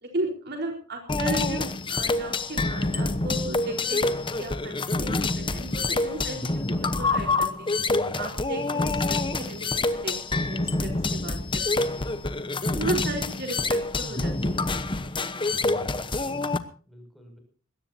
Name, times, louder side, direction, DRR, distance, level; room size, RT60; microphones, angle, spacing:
voice 1, 0.0-7.7 8.2-12.2 12.8-14.7 15.0-15.3, right 2 dB, 50° right, 3 dB, 4.3 m, -35 dB
sound 1, 1.1-16.6, left 3 dB, 25° left, 1.0 m, -27 dB
voice 2, 15.4-16.4 16.9-17.4, equal, ahead, 3 dB, 6.5 m, -51 dB
21.0 x 17.5 x 2.8 m, 0.42 s
head